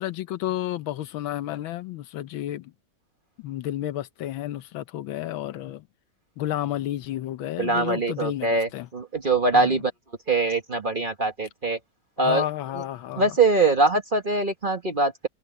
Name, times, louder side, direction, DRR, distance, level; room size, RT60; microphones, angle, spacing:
voice 1, 0.0-2.7 3.4-5.9 6.4-8.9 9.5-9.8 12.2-13.4, left 13 dB, 80° left, 1.6 m, -31 dB
voice 2, 7.6-9.9 10.3-11.8 12.2-12.4 13.2-15.3, right 3 dB, 30° right, 1.2 m, -23 dB
open air
omnidirectional pair, 2.2 m